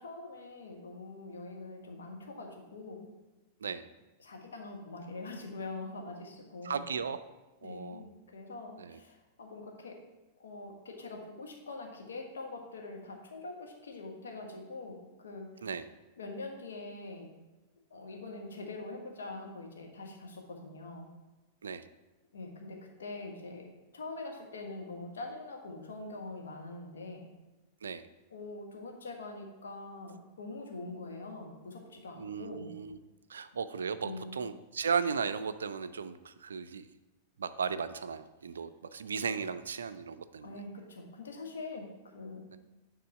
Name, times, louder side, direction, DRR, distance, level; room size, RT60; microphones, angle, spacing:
voice 1, 0.0-3.1 4.2-6.8 7.6-10.0 10.4-15.7 16.2-17.3 17.9-21.1 22.3-23.7 23.9-27.3 28.3-32.7 34.0-34.3 40.4-42.6, left 2 dB, 70° left, 1 dB, 1.3 m, -44 dB
voice 2, 6.6-7.2 7.6-8.1 8.8-9.0 15.6-15.9 21.6-21.9 27.8-28.0 32.2-33.0 33.3-36.9 37.4-40.6 42.5-42.6, right 6 dB, 70° right, 12 dB, 0.4 m, -36 dB
9.3 x 3.7 x 4.8 m, 1.1 s
figure-of-eight pair, 95°, 0 cm